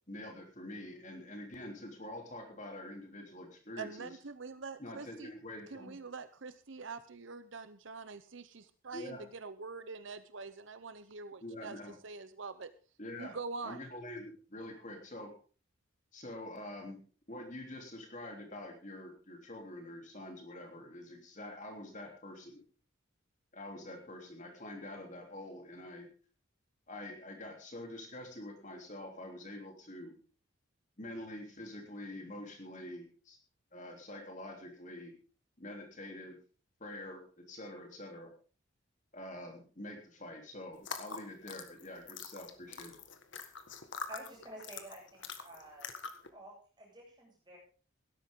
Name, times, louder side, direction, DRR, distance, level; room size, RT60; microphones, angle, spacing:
voice 1, 0.1-4.1 4.8-6.0 8.9-9.2 11.4-11.9 13.0-13.4 13.6-15.3 16.1-17.0 17.3-22.6 23.5-26.1 26.9-30.1 31.0-33.4 33.7-35.1 35.6-36.4 36.8-38.3 39.1-43.0, left 1 dB, 35° left, 2 dB, 3.3 m, -46 dB
voice 2, 3.8-5.3 5.7-12.7 13.2-13.8, right 4 dB, 65° right, 12 dB, 0.8 m, -45 dB
sound 1, 40.8-46.3, left 5 dB, 65° left, 1.7 m, -45 dB
voice 3, 44.1-45.9 46.3-47.6, right 1 dB, 20° right, -3 dB, 7.9 m, -50 dB
17.0 x 13.0 x 3.8 m, 0.38 s
head